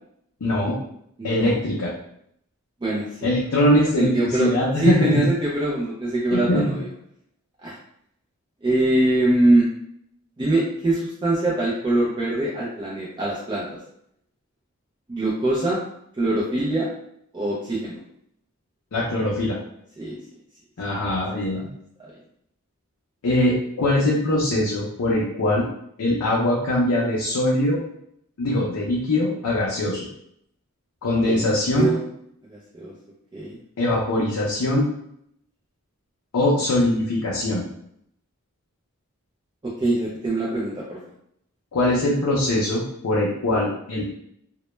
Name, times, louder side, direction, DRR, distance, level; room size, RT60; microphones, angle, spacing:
voice 1, 0.4-0.8 1.2-1.9 3.2-5.3 6.3-6.7 18.9-19.6 20.8-21.7 23.2-25.7 26.0-27.8 28.4-30.1 31.0-31.9 33.8-34.9 36.3-37.6 41.7-44.1, left 1 dB, 80° left, -4 dB, 0.5 m, -22 dB
voice 2, 1.2-1.6 2.8-3.3 3.7-4.5 4.8-6.9 7.6-7.7 8.6-9.7 10.4-13.8 15.1-15.8 16.2-16.9 17.3-17.9 20.0-20.2 21.1-21.2 21.5-21.6 31.3-32.0 32.5-32.9 33.3-33.6 39.6-41.0, right 2 dB, 20° right, -7 dB, 0.3 m, -23 dB
2.1 x 2.0 x 3.0 m, 0.72 s
head